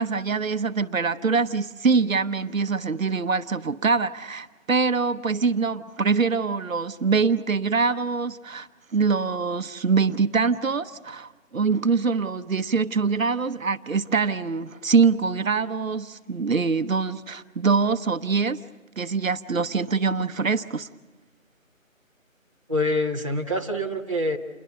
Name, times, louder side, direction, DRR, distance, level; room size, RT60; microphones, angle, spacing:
voice 1, 0.0-18.6 19.0-20.9, right 5 dB, 75° right, 10 dB, 1.0 m, -24 dB
voice 2, 22.7-24.4, left 1 dB, 25° right, -3 dB, 1.1 m, -25 dB
29.0 x 22.0 x 6.9 m, 1.2 s
figure-of-eight pair, 180°, 41 cm